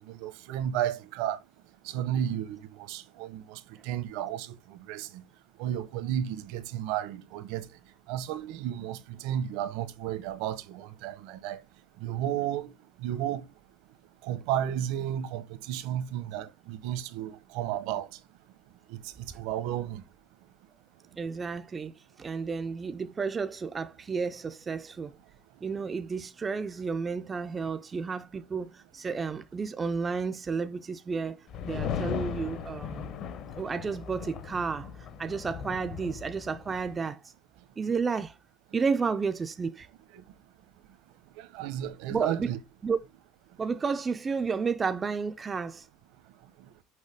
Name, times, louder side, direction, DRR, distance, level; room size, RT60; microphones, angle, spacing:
voice 1, 0.2-1.4 1.9-2.6 2.9-5.2 5.6-7.6 8.1-9.0 9.2-11.6 12.0-12.7 13.0-13.4 14.3-18.1 19.4-20.0 41.5-42.6, right 11 dB, 70° right, 1.0 m, -32 dB
voice 2, 21.2-25.1 25.6-33.1 33.6-37.3 37.8-38.4 38.7-39.9 42.1-42.5 42.8-43.0 43.6-45.9, right 5 dB, 15° right, 0.4 m, -32 dB
sound 1, 31.5-36.9, left 8 dB, 40° left, 0.7 m, -37 dB
6.4 x 5.6 x 3.5 m
cardioid pair, 175°, 0 cm